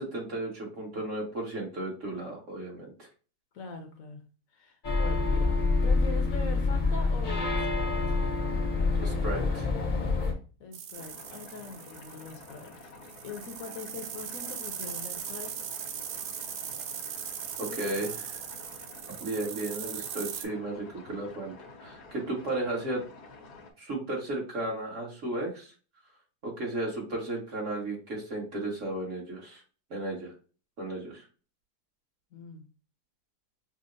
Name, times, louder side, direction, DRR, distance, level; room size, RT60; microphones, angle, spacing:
voice 1, 0.0-3.1 9.0-9.7 17.6-18.1 19.2-21.5 21.8-23.0 23.8-25.7 26.4-29.6 29.9-30.3 30.8-31.2, right 2 dB, 50° right, -2 dB, 1.7 m, -34 dB
voice 2, 3.5-4.2 4.5-5.5 5.8-8.2 10.6-12.9 13.2-15.5 17.7-18.2 32.3-32.7, left 4 dB, 65° left, 4 dB, 1.0 m, -42 dB
sound 1, 4.8-10.3, left 3 dB, 40° left, 0.8 m, -27 dB
sound 2, 10.7-20.4, right 9 dB, 80° right, 1.1 m, -39 dB
sound 3, 10.9-23.7, left 3 dB, 80° left, 1.4 m, -50 dB
6.1 x 2.1 x 2.5 m, 0.36 s
omnidirectional pair, 1.7 m